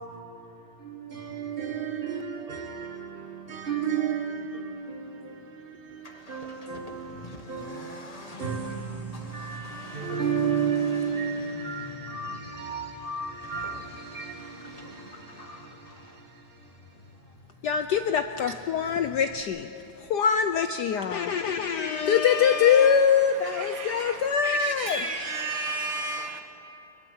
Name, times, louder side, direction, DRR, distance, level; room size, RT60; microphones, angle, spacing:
voice 1, 0.0-16.7, right 6 dB, 25° right, 1.6 m, -33 dB
Accelerating revving vroom, 5.9-19.4, left 2 dB, 20° left, 1.2 m, -47 dB
voice 2, 17.6-19.7 20.0-26.0, left 7 dB, 70° left, 1.0 m, -24 dB
voice 3, 23.4-26.4, right 3 dB, 80° right, 2.6 m, -33 dB
23.0 x 21.5 x 7.8 m
omnidirectional pair, 2.4 m